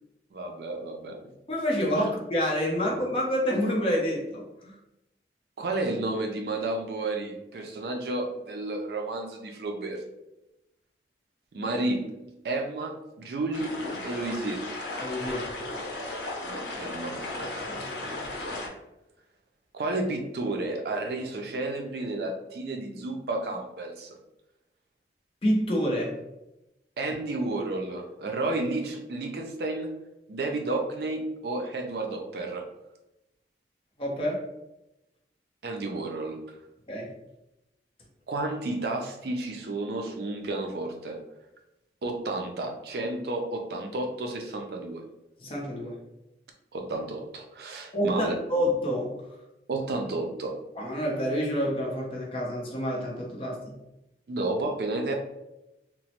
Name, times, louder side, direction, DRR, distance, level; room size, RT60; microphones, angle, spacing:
voice 1, 0.3-1.2 2.0-2.1 5.6-10.1 11.5-13.7 14.0-14.6 16.4-17.3 19.7-24.2 27.0-29.9 30.3-32.6 35.6-36.4 38.3-41.2 42.0-45.1 46.7-48.3 49.7-50.5 54.3-55.1, right 2 dB, 65° right, 3 dB, 0.4 m, -31 dB
voice 2, 1.5-4.8 15.0-15.5 17.7-17.9 25.4-26.1 34.0-34.4 36.9-37.1 45.4-46.0 47.9-49.1 50.8-53.8, equal, 30° left, -2 dB, 0.6 m, -28 dB
sound 1, 13.5-18.7, left 2 dB, 80° left, 0.6 m, -35 dB
3.0 x 2.0 x 2.8 m, 0.93 s
head